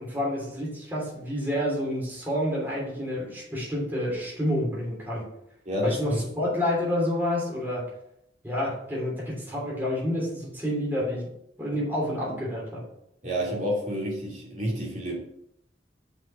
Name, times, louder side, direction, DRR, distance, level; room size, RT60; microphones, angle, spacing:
voice 1, 0.0-5.3 5.8-7.8 8.4-11.3 11.6-12.8, left 1 dB, 10° right, -5 dB, 3.1 m, -29 dB
voice 2, 5.6-6.2 13.2-15.2, equal, 45° right, -4 dB, 2.8 m, -29 dB
6.0 x 5.5 x 6.4 m, 0.75 s
head